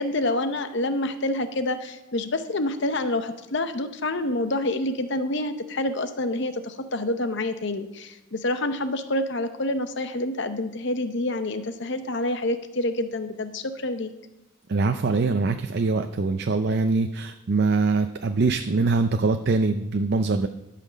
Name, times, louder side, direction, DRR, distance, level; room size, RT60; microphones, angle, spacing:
voice 1, 0.0-14.1, left 1 dB, 55° left, 10 dB, 0.8 m, -27 dB
voice 2, 14.7-20.5, right 3 dB, 50° right, 7 dB, 0.5 m, -23 dB
12.5 x 5.8 x 6.3 m, 0.96 s
head